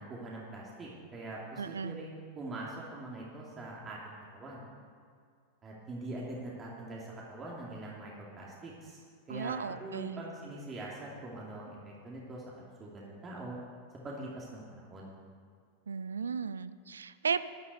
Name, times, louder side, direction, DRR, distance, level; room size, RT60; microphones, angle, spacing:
voice 1, 0.0-4.6 5.6-9.0 9.3-13.6 14.0-15.1, right 2 dB, 25° right, -4 dB, 2.6 m, -43 dB
voice 2, 1.6-2.0 9.3-10.2 15.9-17.4, right 6 dB, 70° right, 15 dB, 0.5 m, -35 dB
12.5 x 9.6 x 8.0 m, 2.2 s
figure-of-eight pair, 90°, 0 cm